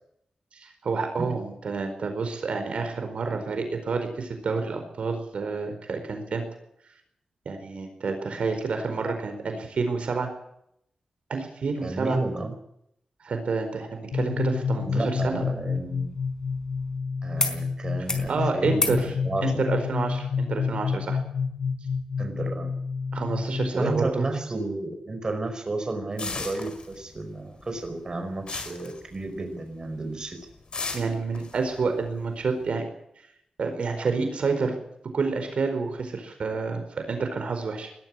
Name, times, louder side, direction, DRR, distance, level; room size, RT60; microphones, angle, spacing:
voice 1, 0.5-6.4 7.4-10.3 11.3-12.2 13.2-15.4 18.3-21.2 23.1-24.3 30.9-32.9 33.6-34.8 35.1-37.9, right 4 dB, 70° right, 6 dB, 4.7 m, -29 dB
voice 2, 11.8-12.5 14.8-16.1 17.2-19.6 22.2-22.7 23.7-30.4 31.1-31.2, right 2 dB, 35° right, 5 dB, 5.0 m, -32 dB
sound 1, 14.1-24.0, left 5 dB, 85° left, 2.2 m, -29 dB
sound 2, 15.2-17.0 17.4-17.6 17.9-18.3 18.7-19.0 20.4-20.5, left 2 dB, 30° left, 4.3 m, -32 dB
sound 3, 26.2-27.3 27.6-29.6 30.0-30.2 30.7-32.6, left 4 dB, 50° left, 5.0 m, -36 dB
21.0 x 13.5 x 9.9 m, 0.75 s
wide cardioid pair, 100°, 2 cm